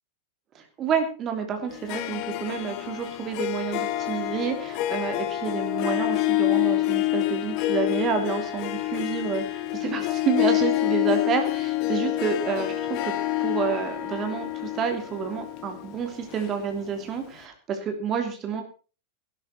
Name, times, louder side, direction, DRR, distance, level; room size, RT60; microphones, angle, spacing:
voice 1, 0.5-13.1 13.4-18.6, right 6 dB, 30° right, 5 dB, 2.9 m, -29 dB
Harp, 1.7-17.1, left 16 dB, 40° left, 1.6 m, -27 dB
18.5 x 11.5 x 4.2 m, 0.35 s
figure-of-eight pair, 90°, 0 cm